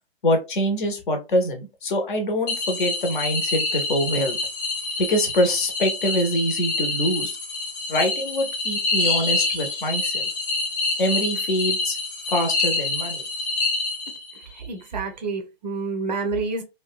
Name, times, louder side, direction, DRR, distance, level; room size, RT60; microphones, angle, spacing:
voice 1, 0.2-4.4 5.0-7.4 7.9-10.3 11.0-12.0 12.3-13.2, equal, 50° left, 0.9 m, -24 dB
sound 1, 2.5-14.4, left 3 dB, 15° left, 0.5 m, -27 dB
voice 2, 14.6-16.6, right 4 dB, 45° right, 0.5 m, -28 dB
2.7 x 2.2 x 2.2 m
figure-of-eight pair, 125°, 32 cm